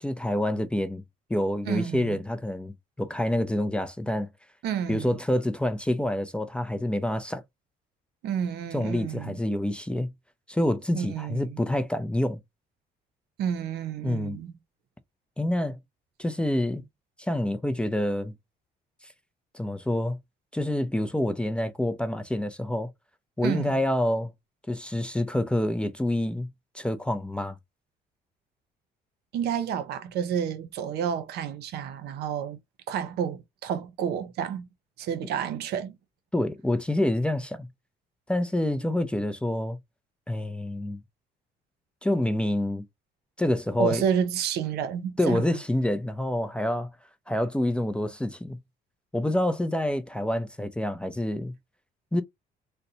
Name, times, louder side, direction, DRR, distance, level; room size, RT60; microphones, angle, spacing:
voice 1, 0.0-1.0 1.3-4.3 4.9-7.4 8.7-10.1 10.5-12.4 14.0-14.4 15.4-15.8 16.2-16.8 17.2-18.3 19.5-20.2 20.5-22.9 23.4-24.3 24.7-26.5 26.7-27.6 36.3-37.7 38.3-39.8 40.3-41.0 42.0-42.9 43.4-44.0 45.2-46.9 47.3-48.6 49.1-51.5 52.1-52.2, left 1 dB, 5° left, 0.4 m, -27 dB
voice 2, 1.7-2.2 4.6-5.2 8.2-9.4 10.9-11.6 13.4-14.5 23.4-23.8 29.3-32.6 32.9-34.7 35.0-36.0 43.8-45.5, right 8 dB, 75° right, 0.7 m, -30 dB
3.9 x 2.1 x 2.7 m
cardioid pair, 110°, 17 cm